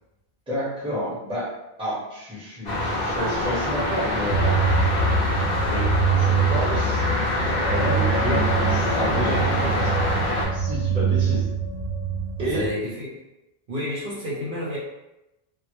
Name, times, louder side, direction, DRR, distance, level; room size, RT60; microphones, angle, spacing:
voice 1, 0.5-1.5 1.8-4.8 5.7-7.1 7.4-10.1 10.5-11.5 12.4-12.7, equal, 5° right, -8 dB, 0.7 m, -30 dB
sound 1, 2.7-10.5, left 1 dB, 50° left, 0.6 m, -25 dB
sound 2, 4.3-12.7, right 4 dB, 80° left, 0.9 m, -24 dB
voice 2, 12.4-13.1 13.7-14.8, equal, 60° right, -6 dB, 0.7 m, -30 dB
2.0 x 2.0 x 2.9 m, 0.94 s
omnidirectional pair, 1.1 m